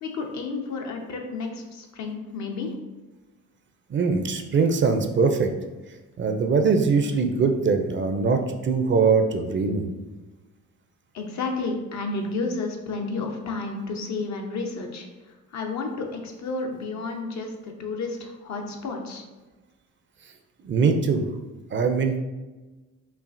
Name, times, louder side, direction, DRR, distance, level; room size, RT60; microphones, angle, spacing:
voice 1, 0.0-2.7 11.1-15.1 15.5-19.2, left 3 dB, 65° left, 2 dB, 0.8 m, -31 dB
voice 2, 3.9-5.5 6.2-9.9 20.6-21.3 21.7-22.2, right 4 dB, 40° right, 6 dB, 0.5 m, -22 dB
5.5 x 2.4 x 2.6 m, 1.2 s
cardioid pair, 90°, 30 cm